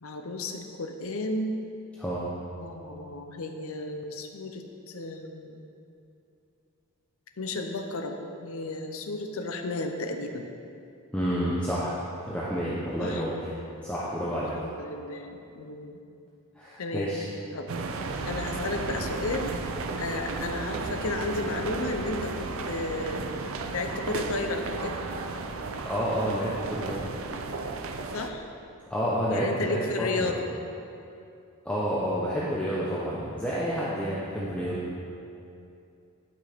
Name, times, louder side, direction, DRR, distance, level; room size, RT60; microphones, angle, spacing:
voice 1, 0.0-1.6 2.6-5.6 7.4-10.5 13.0-13.2 14.2-16.0 16.8-17.1 17.5-17.7 18.3-19.5 20.0-23.3 23.7-25.0 28.1-28.4 29.3-30.4, left 2 dB, 70° left, 5 dB, 0.7 m, -33 dB
voice 2, 2.0-2.3 11.1-12.0 12.2-13.5 13.8-14.5 16.6-17.3 25.8-27.1 28.9-30.3 31.6-34.8, equal, 5° left, -8 dB, 0.7 m, -29 dB
sound 1, 17.7-28.3, right 3 dB, 65° right, 0.5 m, -34 dB
11.5 x 6.0 x 3.5 m, 2.6 s
head